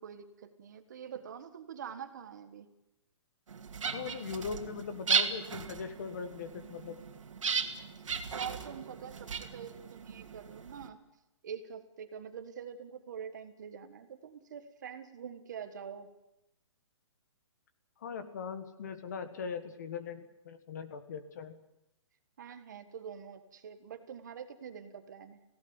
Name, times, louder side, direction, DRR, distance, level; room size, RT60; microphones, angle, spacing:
voice 1, 0.0-2.7 8.3-11.0 11.4-16.1 22.4-25.4, right 7 dB, 35° right, 10 dB, 1.5 m, -45 dB
sound 1, 3.5-10.9, right 6 dB, 85° right, 2.4 m, -36 dB
voice 2, 3.9-7.0 18.0-21.6, left 6 dB, 35° left, 10 dB, 1.6 m, -40 dB
19.5 x 17.0 x 9.8 m, 0.90 s
hypercardioid pair, 180°, 16 cm